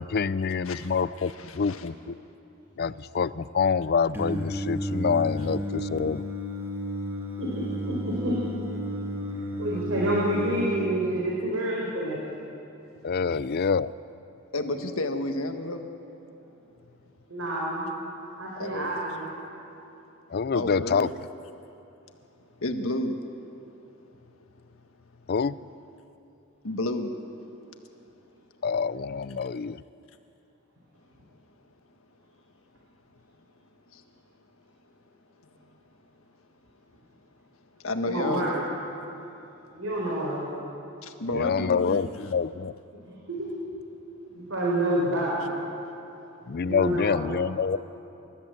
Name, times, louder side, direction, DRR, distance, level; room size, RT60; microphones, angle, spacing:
voice 1, 0.0-2.2 2.8-6.2 13.0-13.9 20.3-21.1 25.3-25.6 28.6-29.8 41.3-42.7 46.5-47.8, left 5 dB, 50° left, 17 dB, 0.5 m, -26 dB
voice 2, 0.6-1.9 13.3-13.4 14.5-15.8 18.6-19.0 20.5-21.1 22.6-23.2 26.6-27.1 33.9-34.0 35.4-35.6 37.8-38.6 41.0-42.1 46.2-46.3, left 2 dB, 85° left, 5 dB, 1.6 m, -31 dB
Singing, 4.1-10.7, equal, 10° right, 2.4 m, -32 dB
voice 3, 7.4-8.3 9.6-12.2 17.3-18.0 18.4-19.3 38.1-38.5 39.7-40.4 43.0-43.5 44.3-45.5 46.6-47.2, right 1 dB, 90° right, -5 dB, 4.3 m, -28 dB
28.0 x 13.5 x 7.9 m, 2.9 s
head